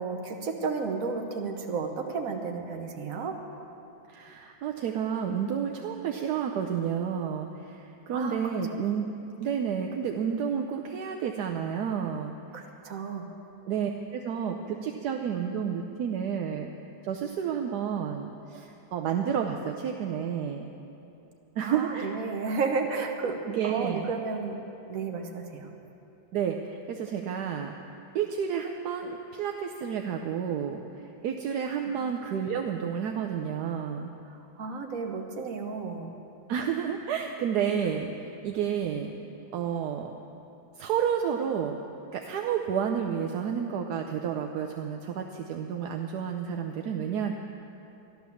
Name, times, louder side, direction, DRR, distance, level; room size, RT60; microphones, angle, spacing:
voice 1, 0.0-3.4 8.1-8.7 12.5-13.3 21.6-24.6 24.9-25.7 31.9-32.0 34.3-36.2, right 4 dB, 50° right, 3 dB, 1.4 m, -33 dB
voice 2, 4.1-9.0 9.4-12.3 13.7-16.7 17.0-20.7 21.6-22.1 23.5-24.1 26.3-27.7 28.1-34.1 36.5-39.1 39.5-40.1 40.8-41.8 42.1-47.3, right 8 dB, 65° right, 3 dB, 1.1 m, -30 dB
14.0 x 11.5 x 7.1 m, 2.9 s
omnidirectional pair, 2.1 m